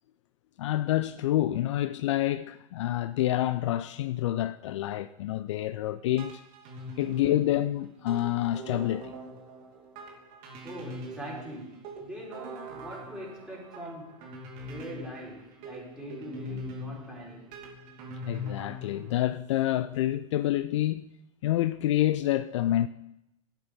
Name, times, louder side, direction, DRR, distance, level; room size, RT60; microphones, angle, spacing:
voice 1, 0.6-6.4 7.0-9.1 18.3-21.1 21.4-22.9, left 13 dB, 55° left, 0.4 m, -28 dB
sound 1, 6.2-19.1, equal, 45° right, 2.7 m, -42 dB
voice 2, 10.6-14.3 14.7-17.5, equal, 5° right, 5.0 m, -42 dB
12.0 x 8.3 x 5.2 m
figure-of-eight pair, 90°, 18 cm